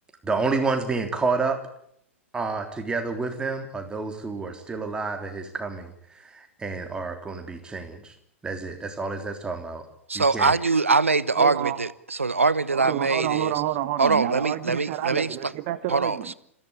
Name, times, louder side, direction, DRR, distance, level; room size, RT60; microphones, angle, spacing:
voice 1, 0.2-1.6 2.3-5.9 6.3-8.1 8.4-9.8 10.1-10.5, right 4 dB, 10° right, 3.5 m, -29 dB
voice 2, 10.1-13.5 14.0-15.5 15.9-16.2, right 4 dB, 80° right, 1.0 m, -23 dB
voice 3, 11.4-11.8 12.7-16.3, right 14 dB, 40° right, 1.3 m, -29 dB
27.0 x 15.5 x 8.3 m
figure-of-eight pair, 100°, 7 cm